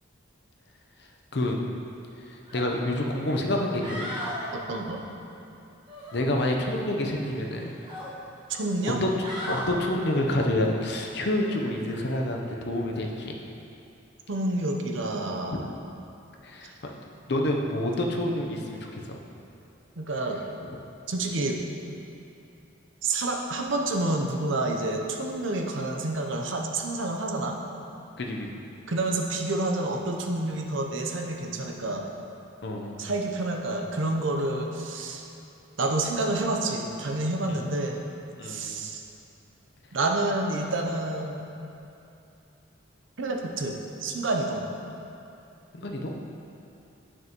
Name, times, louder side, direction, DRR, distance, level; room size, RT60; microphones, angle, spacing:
voice 1, 2.3-4.1 6.1-7.7 9.0-13.4 16.4-16.9 17.3-19.2 28.2-28.5 32.6-33.0 37.4-37.6 38.4-38.7 45.7-46.1, left 1 dB, 55° left, 1 dB, 0.7 m, -28 dB
sound 1, 2.5-2.7 3.1-3.2 3.6-4.4 5.9-6.8 7.2-8.1 8.8-9.7 11.4-11.6, left 1 dB, 25° right, 1.3 m, -37 dB
voice 2, 4.5-5.1 8.5-9.0 14.3-15.6 20.0-20.4 21.1-21.6 23.0-27.6 28.9-32.0 33.0-35.2 35.8-38.0 38.4-39.0 39.9-41.5 43.2-43.7 44.0-44.6, right 2 dB, 70° right, 2 dB, 0.7 m, -28 dB
9.3 x 6.2 x 3.0 m, 2.8 s
head